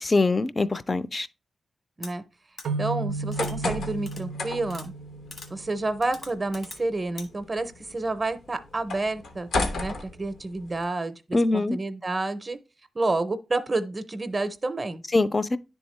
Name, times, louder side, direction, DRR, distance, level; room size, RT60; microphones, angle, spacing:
voice 1, 0.0-1.3 11.3-11.8 15.1-15.6, left 3 dB, 30° left, 0.4 m, -23 dB
sound 1, 2.0-2.1 2.6-2.7 3.3-3.5 4.1-4.2 4.7-4.9 5.3-5.5 6.0-6.8 7.2-7.3, left 3 dB, 70° left, 1.2 m, -42 dB
sound 2, 2.7-6.2, right 3 dB, 90° right, 0.3 m, -34 dB
voice 2, 2.8-4.9 5.5-9.5 9.8-12.6 12.9-15.0, right 2 dB, 30° right, 0.5 m, -29 dB
sound 3, 3.1-10.8, left 2 dB, 85° left, 0.8 m, -35 dB
9.9 x 3.5 x 3.1 m
wide cardioid pair, 100°, 0 cm